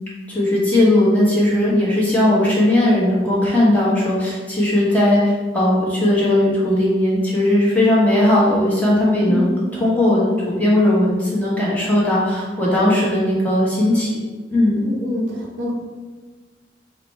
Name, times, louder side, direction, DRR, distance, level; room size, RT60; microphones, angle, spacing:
voice 1, 0.3-14.1 14.5-14.8, left 1 dB, 10° left, -7 dB, 1.1 m, -17 dB
voice 2, 9.2-9.6 14.8-15.7, left 1 dB, 75° right, -1 dB, 0.7 m, -26 dB
4.1 x 2.2 x 4.3 m, 1.3 s
head